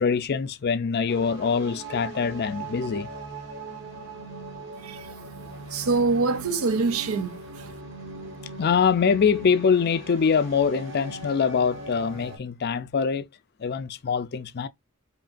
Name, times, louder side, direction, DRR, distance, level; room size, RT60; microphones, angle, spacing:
voice 1, 0.0-3.1 8.6-13.3 13.6-14.7, left 6 dB, 50° left, 0.4 m, -24 dB
sound 1, 1.1-12.4, right 2 dB, 60° right, 1.5 m, -40 dB
voice 2, 4.8-5.1 5.7-7.8, right 4 dB, 90° right, 0.6 m, -25 dB
5.1 x 2.7 x 2.5 m
head